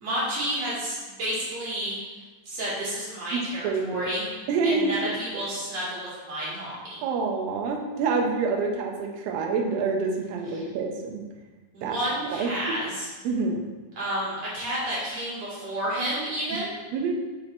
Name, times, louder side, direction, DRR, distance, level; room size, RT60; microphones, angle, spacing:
voice 1, 0.0-2.0 2.4-4.2 4.6-7.0 10.5-10.7 11.7-13.1 13.9-16.7, right 1 dB, 45° right, -8 dB, 2.9 m, -30 dB
voice 2, 3.3-4.1 4.5-5.0 7.0-11.2 11.8-12.0 12.3-12.5 13.2-13.6 16.9-17.1, right 4 dB, 75° right, 1 dB, 2.2 m, -27 dB
6.2 x 6.0 x 3.9 m, 1.2 s
omnidirectional pair, 4.9 m